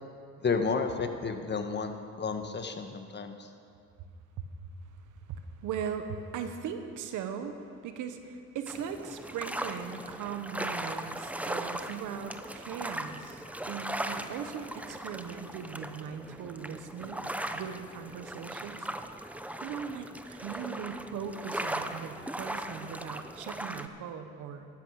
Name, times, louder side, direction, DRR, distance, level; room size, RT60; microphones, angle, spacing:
voice 1, 0.4-3.5, left 4 dB, 35° left, 6 dB, 1.4 m, -32 dB
voice 2, 5.1-18.9 19.2-19.3 19.6-24.7, right 7 dB, 85° right, 7 dB, 1.2 m, -39 dB
sound 1, 8.7-23.9, right 1 dB, 5° right, 0.7 m, -38 dB
14.0 x 11.0 x 6.4 m, 2.4 s
cardioid pair, 90°, 30 cm